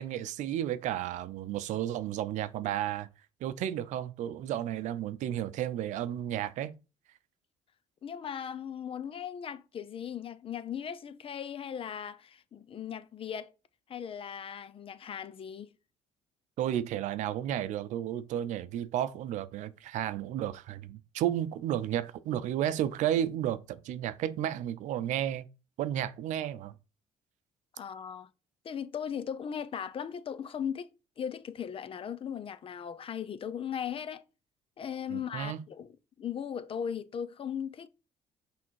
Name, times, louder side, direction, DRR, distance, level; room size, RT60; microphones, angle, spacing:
voice 1, 0.0-3.1 3.4-6.7 16.6-25.5 25.8-26.7 35.1-35.6, right 11 dB, 75° right, 0.6 m, -32 dB
voice 2, 8.0-13.5 13.9-15.7 27.8-28.3 28.6-30.9 31.2-34.2 34.8-35.9 36.2-37.9, left 8 dB, 45° left, 0.6 m, -38 dB
6.1 x 3.5 x 4.6 m
supercardioid pair, 75°, 13 cm